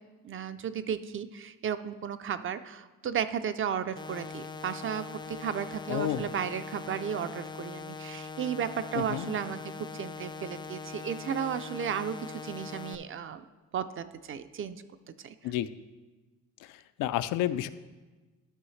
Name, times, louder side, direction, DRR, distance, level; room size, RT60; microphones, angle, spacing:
voice 1, 0.2-13.5 13.7-15.3, right 8 dB, 40° right, 11 dB, 0.5 m, -34 dB
sound 1, 4.0-13.0, left 4 dB, 15° left, 0.4 m, -42 dB
voice 2, 5.9-6.3 8.9-9.3 15.4-15.7 16.6-17.7, left 12 dB, 80° left, 13 dB, 0.5 m, -31 dB
12.0 x 5.6 x 3.2 m, 1.2 s
cardioid pair, 100°, 32 cm